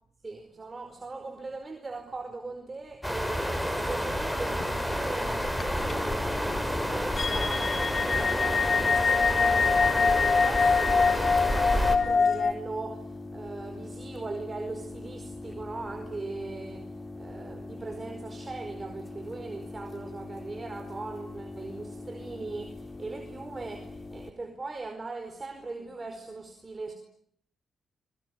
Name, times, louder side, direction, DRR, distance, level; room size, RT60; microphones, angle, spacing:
voice 1, 0.2-26.9, right 3 dB, 30° right, 4.7 m, -40 dB
sound 1, 3.0-12.0, equal, 5° left, 5.5 m, -30 dB
sound 2, 4.2-4.6 4.9-5.0 5.3-12.5, left 5 dB, 50° left, 2.0 m, -25 dB
sound 3, 5.8-24.3, left 2 dB, 30° left, 3.5 m, -42 dB
27.0 x 22.5 x 9.6 m
cardioid pair, 65°, 0 cm